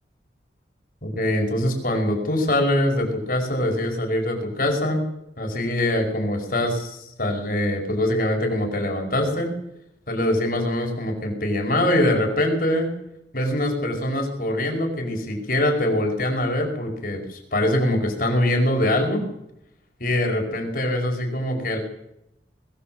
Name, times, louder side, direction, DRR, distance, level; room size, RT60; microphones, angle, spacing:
voice 1, 1.0-5.1 5.4-9.5 10.1-12.9 13.3-19.2 20.0-21.8, left 1 dB, 50° left, 2 dB, 5.2 m, -23 dB
22.0 x 16.5 x 7.9 m, 0.84 s
head